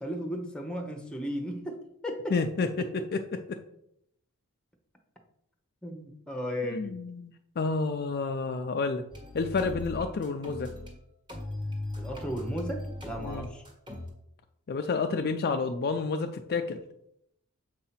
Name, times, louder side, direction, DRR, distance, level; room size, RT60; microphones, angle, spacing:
voice 1, 0.0-2.3 2.8-2.9 5.8-7.0 12.0-13.6, equal, 5° left, 2 dB, 0.9 m, -35 dB
voice 2, 2.3-2.8 3.1-3.2 6.7-9.0 9.3-10.7 13.2-13.5 14.7-16.8, left 4 dB, 45° left, 6 dB, 0.4 m, -30 dB
sound 1, 9.1-10.9 11.3-14.1, left 1 dB, 20° right, 1.5 m, -38 dB
7.4 x 2.8 x 5.7 m, 0.75 s
head